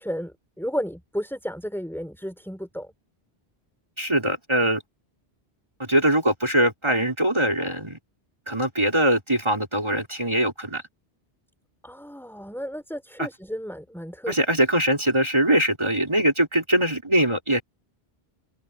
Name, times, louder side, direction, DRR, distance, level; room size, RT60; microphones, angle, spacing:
voice 1, 0.0-2.9 11.8-14.3, equal, ahead, 4.8 m, -33 dB
voice 2, 4.0-4.8 5.8-8.0 8.5-10.8 13.2-13.3 14.3-17.6, right 1 dB, 25° right, 4.5 m, -22 dB
open air
omnidirectional pair, 1.1 m